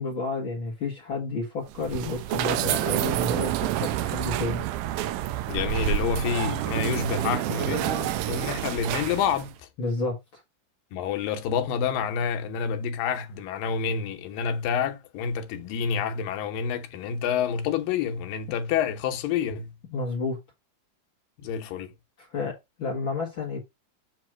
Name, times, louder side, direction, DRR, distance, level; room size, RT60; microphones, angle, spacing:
voice 1, 0.0-4.6 9.8-10.4 19.9-20.4 22.2-22.5 22.8-23.6, left 3 dB, 45° left, 2.0 m, -31 dB
sound 1, 1.7-9.5, right 13 dB, 80° right, 1.9 m, -28 dB
voice 2, 5.5-9.6 10.9-19.7 21.4-21.9, left 7 dB, 85° left, 2.6 m, -28 dB
7.9 x 3.2 x 6.0 m
omnidirectional pair, 3.9 m